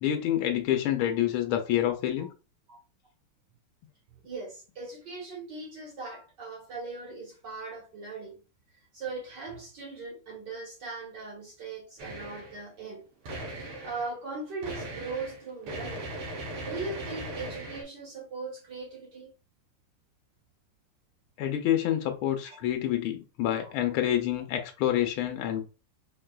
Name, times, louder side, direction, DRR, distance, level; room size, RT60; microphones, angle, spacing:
voice 1, 0.0-2.3 21.4-25.7, left 11 dB, 80° left, 1.5 m, -27 dB
voice 2, 4.2-8.4 8.9-13.0 13.6-16.1 16.6-19.3 22.4-22.6 23.6-23.7, right 3 dB, 55° right, 1.8 m, -39 dB
sound 1, 12.0-12.6 13.2-14.1 14.6-17.8, right 1 dB, 80° right, 2.1 m, -38 dB
4.7 x 3.3 x 2.2 m
omnidirectional pair, 2.4 m